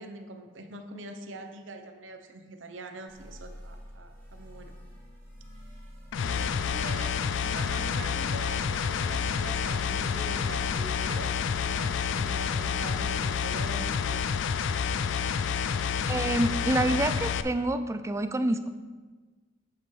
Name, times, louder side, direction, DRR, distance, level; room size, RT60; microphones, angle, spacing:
voice 1, 0.0-4.8 6.2-14.3, right 2 dB, 80° right, 6 dB, 0.7 m, -43 dB
sound 1, 3.1-14.8, equal, 10° left, 2.2 m, -48 dB
sound 2, 6.1-17.4, left 6 dB, 75° left, 0.3 m, -29 dB
voice 2, 16.1-18.7, right 1 dB, 15° right, 9 dB, 0.3 m, -27 dB
8.2 x 6.8 x 3.2 m, 1.4 s
head